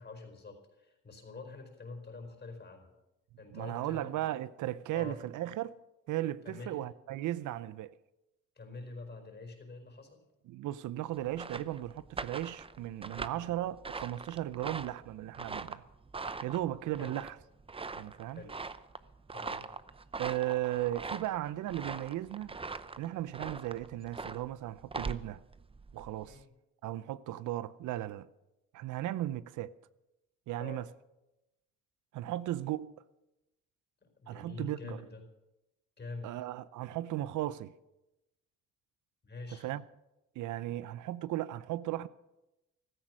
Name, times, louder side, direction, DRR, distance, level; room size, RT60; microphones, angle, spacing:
voice 1, 0.0-2.9 3.4-4.2 4.6-5.2 6.4-6.8 8.5-10.2 13.3-13.6 17.0-17.2 18.3-18.6 19.3-19.6 26.2-26.5 30.6-30.9 34.0-35.2 36.0-36.3 39.2-39.7, left 3 dB, 35° left, 4.7 m, -46 dB
voice 2, 3.5-5.8 6.1-7.9 10.5-15.8 16.4-17.4 17.9-18.4 20.2-22.5 23.0-25.4 25.9-26.4 26.8-28.3 28.7-29.7 30.5-30.9 32.1-32.9 34.3-35.0 36.2-37.7 39.6-39.8 40.4-42.1, right 14 dB, 80° right, 0.6 m, -36 dB
sound 1, 11.1-26.4, right 4 dB, 20° right, 0.6 m, -42 dB
15.5 x 13.5 x 6.3 m
cardioid pair, 90°, 30 cm